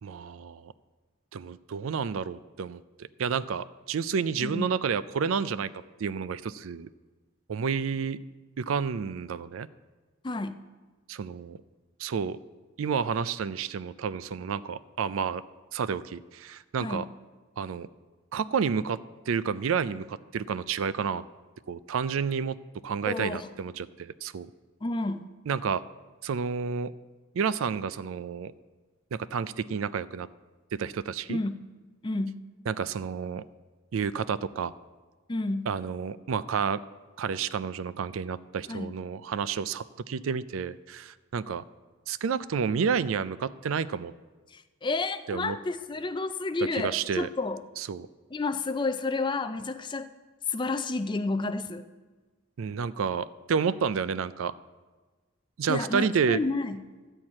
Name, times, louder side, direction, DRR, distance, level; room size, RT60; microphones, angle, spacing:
voice 1, 0.0-0.7 1.3-5.7 6.0-6.9 7.5-8.2 8.6-9.7 11.1-11.6 12.0-12.4 12.8-15.4 15.7-17.1 17.6-17.9 18.3-19.0 19.3-21.2 21.7-22.6 22.8-24.5 25.5-25.8 26.2-26.9 27.3-28.5 29.1-30.3 30.7-31.4 32.7-33.4 33.9-34.7 35.7-36.8 37.2-41.6 42.1-44.1 45.3-45.6 46.7-47.3 47.8-48.1 52.6-54.5 55.6-56.4, right 6 dB, 75° right, 16 dB, 0.4 m, -30 dB
voice 2, 10.2-10.6 16.8-17.1 23.0-23.5 24.8-25.3 31.3-31.6 32.0-32.4 35.3-35.7 38.7-38.9 44.5-47.6 48.3-50.1 50.5-51.9 55.7-56.8, left 3 dB, 20° left, 10 dB, 0.4 m, -30 dB
13.0 x 4.6 x 8.6 m, 1.3 s
head